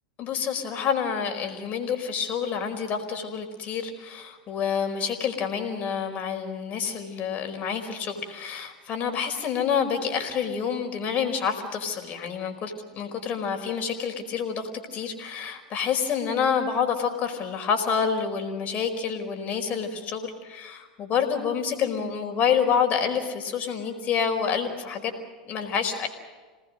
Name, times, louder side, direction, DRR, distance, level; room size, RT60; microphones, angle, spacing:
voice 1, 0.2-25.1 25.4-26.1, left 7 dB, 40° left, 4 dB, 4.9 m, -28 dB
27.5 x 19.5 x 6.5 m, 1.4 s
hypercardioid pair, 95°, 4 cm